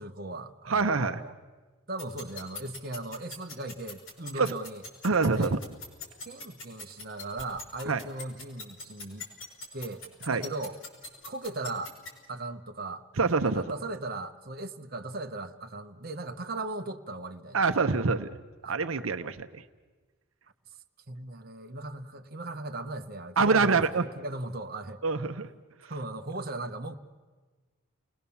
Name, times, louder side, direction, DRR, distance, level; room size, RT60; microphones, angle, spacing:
voice 1, 0.0-1.3 1.9-4.8 5.3-5.6 6.3-9.2 9.7-10.0 10.3-10.8 11.3-11.9 12.3-13.0 13.4-17.6 18.6-18.8 21.1-23.8 24.2-25.0 25.8-27.0, right 2 dB, 45° right, 4 dB, 1.0 m, -38 dB
voice 2, 0.7-1.2 4.4-4.5 5.0-5.6 7.9-8.0 10.3-10.5 13.2-13.6 17.5-18.3 18.7-19.6 23.4-24.0 25.0-25.5, right 4 dB, 80° right, 9 dB, 0.8 m, -25 dB
sound 1, 2.0-12.1, left 4 dB, 75° left, 5.9 m, -40 dB
30.0 x 19.5 x 7.1 m, 1.3 s
head